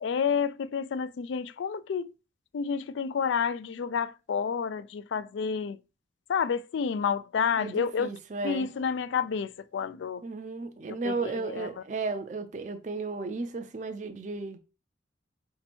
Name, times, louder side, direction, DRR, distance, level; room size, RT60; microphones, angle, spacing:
voice 1, 0.0-2.1 2.5-5.8 6.3-8.2 8.4-10.2 11.0-11.7, left 6 dB, 75° left, 0.3 m, -30 dB
voice 2, 7.6-8.7 10.2-14.6, right 3 dB, 40° right, 0.4 m, -34 dB
4.3 x 2.9 x 4.2 m
head